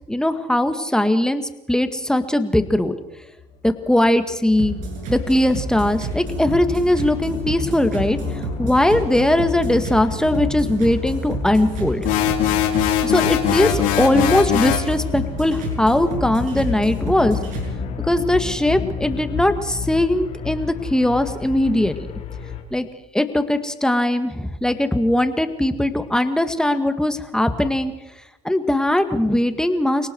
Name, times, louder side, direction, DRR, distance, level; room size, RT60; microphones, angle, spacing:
voice 1, 0.1-2.9 3.6-4.7 5.1-8.2 8.6-12.1 13.0-17.4 18.1-22.0 22.7-22.9 23.1-27.9 28.4-30.1, left 1 dB, 5° left, 8 dB, 2.0 m, -20 dB
sound 1, 3.4-22.6, left 6 dB, 60° left, 4.2 m, -32 dB
sound 2, 4.6-17.7, right 3 dB, 70° right, 7.4 m, -30 dB
sound 3, 12.0-14.9, left 11 dB, 80° left, 2.8 m, -20 dB
30.0 x 18.5 x 4.7 m, 1.0 s
supercardioid pair, 85°, 14 cm